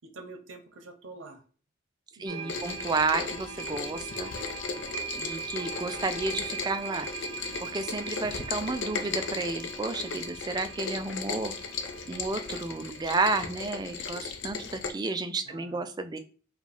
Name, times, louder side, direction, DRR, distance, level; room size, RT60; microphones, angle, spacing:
voice 1, 0.0-1.4 2.2-2.6 15.4-15.8, right 3 dB, 75° right, 6 dB, 0.8 m, -46 dB
voice 2, 2.2-4.3 5.1-7.1 7.6-11.5 12.1-16.2, right 3 dB, 20° right, 9 dB, 0.3 m, -31 dB
sound 1, 2.3-13.9, right 6 dB, 35° right, 0.9 m, -41 dB
Rain, 2.5-14.9, left 5 dB, 65° left, 0.5 m, -36 dB
4.8 x 2.3 x 3.4 m, 0.40 s
head